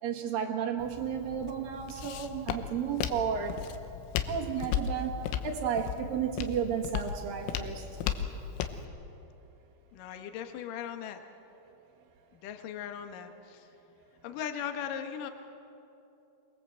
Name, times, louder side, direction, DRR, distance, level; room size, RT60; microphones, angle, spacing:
voice 1, 0.0-3.6 4.3-5.2 5.4-7.9, right 7 dB, 60° right, 2 dB, 2.7 m, -33 dB
Walk footsteps, 0.8-8.9, left 9 dB, 85° left, 3.6 m, -36 dB
voice 2, 9.9-11.2 12.4-13.7 14.2-15.3, left 9 dB, 60° left, 6 dB, 2.3 m, -38 dB
25.5 x 22.5 x 7.8 m, 2.8 s
omnidirectional pair, 5.6 m